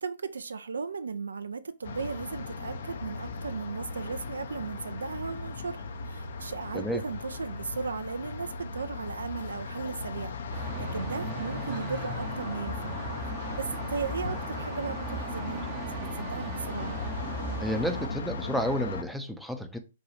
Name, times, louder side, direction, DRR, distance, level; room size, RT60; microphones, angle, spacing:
voice 1, 0.0-13.0 13.2-17.0, right 5 dB, 70° right, 0.3 m, -36 dB
sound 1, 1.8-19.0, left 4 dB, 55° left, 0.5 m, -38 dB
sound 2, 10.5-18.1, right 3 dB, 35° right, 0.7 m, -38 dB
sound 3, 12.6-18.0, right 2 dB, 75° left, 1.6 m, -43 dB
voice 2, 17.6-19.8, equal, ahead, 0.4 m, -31 dB
3.9 x 2.3 x 3.0 m
figure-of-eight pair, 115°, 0 cm